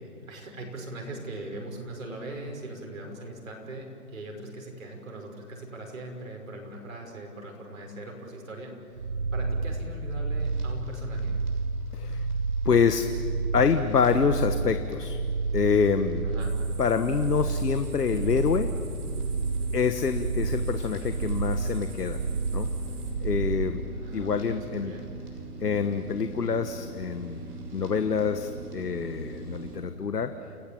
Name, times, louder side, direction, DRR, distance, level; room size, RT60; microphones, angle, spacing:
voice 1, 0.0-11.4 16.2-16.5 23.9-25.1, right 2 dB, 60° right, 1 dB, 6.1 m, -40 dB
sound 1, 9.0-23.7, right 3 dB, 45° right, 1.0 m, -30 dB
sound 2, 10.4-29.8, right 3 dB, 90° right, 6.9 m, -43 dB
voice 2, 11.9-12.2 12.6-13.1 13.5-15.2 15.5-16.2 16.8-18.7 19.7-22.2 22.5-22.7 23.2-23.8 24.1-24.9 25.6-27.4 27.7-30.3, left 6 dB, 85° left, 9 dB, 1.5 m, -26 dB
sound 3, 16.4-23.1, right 3 dB, 30° right, 3.7 m, -49 dB
29.5 x 18.5 x 8.8 m, 2.4 s
hypercardioid pair, 175°, 46 cm